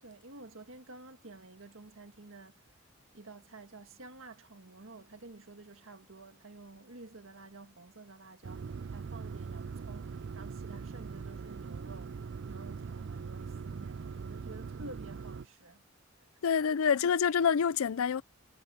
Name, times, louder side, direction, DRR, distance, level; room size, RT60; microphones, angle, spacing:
voice 1, 0.0-2.8 3.1-12.2 12.5-15.8 16.2-16.3, right 2 dB, 70° right, 1.7 m, -51 dB
sound 1, 8.4-15.5, right 5 dB, 55° right, 0.4 m, -41 dB
voice 2, 16.4-18.2, left 7 dB, 90° left, 0.5 m, -27 dB
head